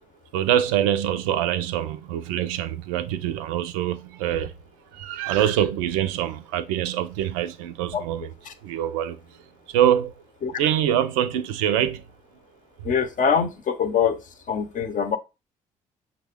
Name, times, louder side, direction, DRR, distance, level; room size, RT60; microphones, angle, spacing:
voice 1, 0.3-4.5 4.9-8.3 8.6-9.2 9.7-10.1 10.6-12.0, right 11 dB, 90° right, 0.4 m, -24 dB
voice 2, 12.8-14.2 14.5-15.2, left 7 dB, 50° left, 0.7 m, -23 dB
5.8 x 2.1 x 3.5 m
hypercardioid pair, 55°, 17 cm